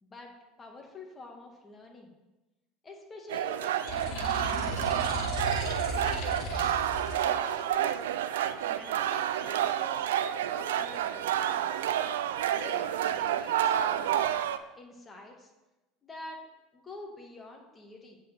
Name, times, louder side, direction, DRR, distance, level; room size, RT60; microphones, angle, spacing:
voice 1, 0.0-0.3 0.6-2.1 2.8-4.5 4.9-6.1 7.2-8.0 8.6-10.1 10.5-11.8 12.5-14.4 14.7-15.5 16.0-16.4 16.7-18.2, left 2 dB, 25° left, 1 dB, 2.0 m, -47 dB
sound 1, 3.3-14.6, right 10 dB, 75° right, 0.3 m, -29 dB
sound 2, 3.9-7.2, left 2 dB, 60° left, 1.4 m, -36 dB
7.9 x 4.5 x 6.7 m, 1.1 s
hypercardioid pair, 75°, 0 cm